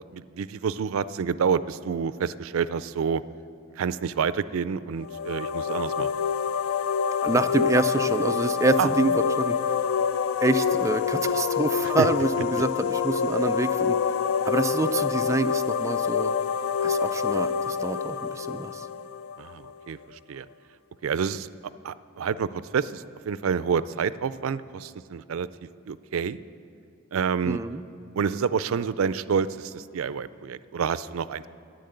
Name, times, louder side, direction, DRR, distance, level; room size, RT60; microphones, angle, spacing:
voice 1, 0.1-3.2 3.8-6.2 8.8-8.9 11.8-12.1 19.4-20.5 21.0-21.5 21.8-25.5 25.9-26.4 27.1-27.6 28.2-31.5, right 6 dB, 85° right, 16 dB, 0.4 m, -28 dB
sound 1, 5.0-19.7, left 6 dB, 75° left, 0.3 m, -26 dB
voice 2, 7.2-9.7 10.4-14.0 14.4-16.3 16.8-18.9 27.5-27.8, right 2 dB, 15° right, 8 dB, 0.4 m, -26 dB
10.5 x 9.6 x 7.8 m, 2.5 s
head